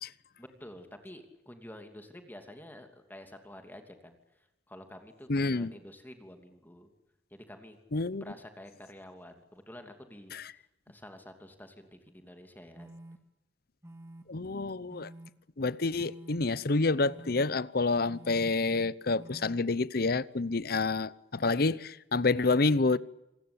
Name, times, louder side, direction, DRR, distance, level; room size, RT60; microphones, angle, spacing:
voice 1, 0.4-4.2 4.7-6.9 7.3-7.8 8.1-12.9, left 1 dB, 10° left, 2.9 m, -49 dB
voice 2, 5.3-5.7 7.9-8.2 10.3-10.4 14.3-15.1 15.6-23.0, left 3 dB, 55° left, 0.8 m, -28 dB
sound 1, 12.1-12.2 12.8-13.2 13.8-14.2 14.9-15.3 16.0-16.4 17.0-17.4 18.1-18.5 19.2-19.6, right 1 dB, 15° right, 1.9 m, -48 dB
27.5 x 20.0 x 8.7 m
head